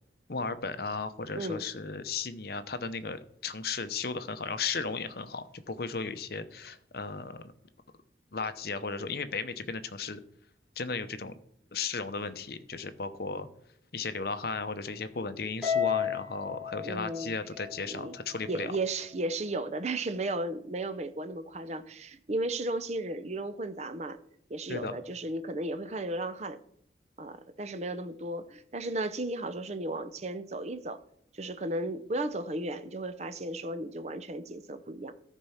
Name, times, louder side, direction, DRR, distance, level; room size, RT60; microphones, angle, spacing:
voice 1, 0.3-7.5 8.3-10.2 10.8-11.3 11.7-13.5 13.9-18.7 24.7-25.0, left 4 dB, 55° left, 0.7 m, -35 dB
Harp, 15.6-18.1, left 8 dB, 5° right, 2.4 m, -32 dB
voice 2, 16.8-17.3 17.9-18.1 18.5-24.2 24.5-26.6 27.2-31.0 31.3-35.1, right 2 dB, 35° right, 0.7 m, -34 dB
13.5 x 4.6 x 5.7 m
head